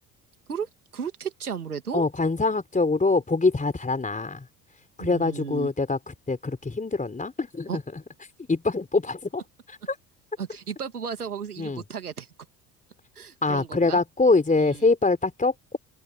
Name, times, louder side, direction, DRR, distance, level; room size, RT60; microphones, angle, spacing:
voice 1, 0.5-2.1 5.0-5.7 7.7-7.8 10.4-12.3 13.2-14.0 14.6-14.9, right 7 dB, 90° right, 2.8 m, -34 dB
voice 2, 1.9-4.4 5.0-6.0 6.3-7.8 8.5-9.4 9.7-10.0 11.6-11.8 13.4-15.8, left 3 dB, 20° left, 4.6 m, -24 dB
open air
figure-of-eight pair, 60°, 44 cm